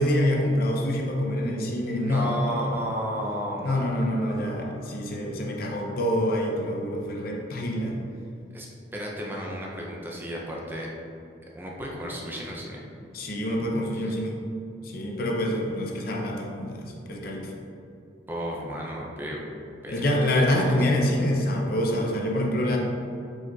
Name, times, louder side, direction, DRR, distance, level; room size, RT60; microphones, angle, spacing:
voice 1, 0.0-2.8 3.6-8.0 13.1-14.4 14.8-17.5 19.9-22.8, left 1 dB, 55° left, 0 dB, 0.6 m, -26 dB
voice 2, 2.0-4.7 8.5-10.9 11.5-12.8 18.3-19.4 19.8-20.8, equal, 10° right, -2 dB, 0.4 m, -34 dB
5.0 x 2.4 x 3.9 m, 2.5 s
head